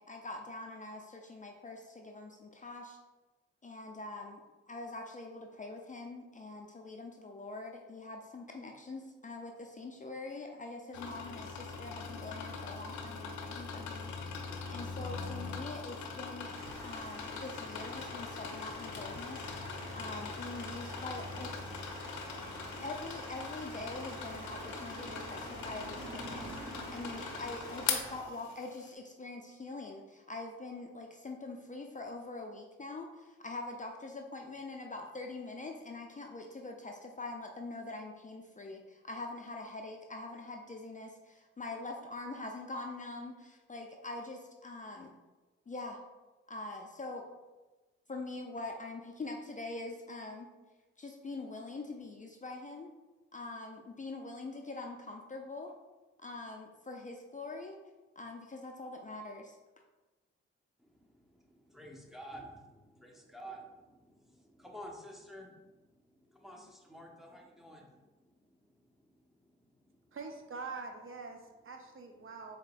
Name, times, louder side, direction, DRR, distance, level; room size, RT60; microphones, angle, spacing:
voice 1, 0.0-3.0 3.6-4.4 4.7-14.1 14.7-16.5 16.8-19.5 19.9-21.5 22.8-45.1 45.7-46.0 46.5-47.2 48.1-50.5 51.0-52.9 53.3-55.7 56.2-57.8 58.2-59.6, left 2 dB, 25° left, 2 dB, 0.5 m, -44 dB
sound 1, 10.9-28.9, left 5 dB, 75° left, 0.6 m, -41 dB
Water, 16.5-28.2, right 1 dB, 80° right, 1.3 m, -47 dB
voice 2, 61.4-65.6 66.4-67.9, equal, ahead, -1 dB, 0.9 m, -50 dB
voice 3, 70.1-72.6, right 4 dB, 45° right, 4 dB, 0.6 m, -44 dB
4.5 x 2.9 x 2.4 m, 1.2 s
hypercardioid pair, 40°, 29 cm